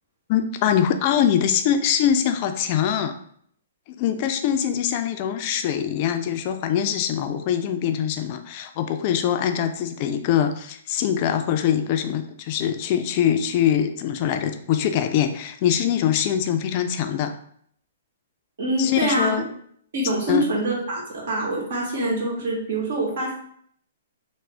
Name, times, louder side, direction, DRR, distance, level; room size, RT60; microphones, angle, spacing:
voice 1, 0.3-3.1 4.0-17.3 18.8-19.4 20.3-20.5, left 9 dB, 40° left, 7 dB, 0.3 m, -23 dB
voice 2, 18.6-19.3 19.9-23.5, right 1 dB, 60° right, -2 dB, 1.3 m, -25 dB
3.5 x 2.1 x 3.3 m, 0.65 s
hypercardioid pair, 135°, 0 cm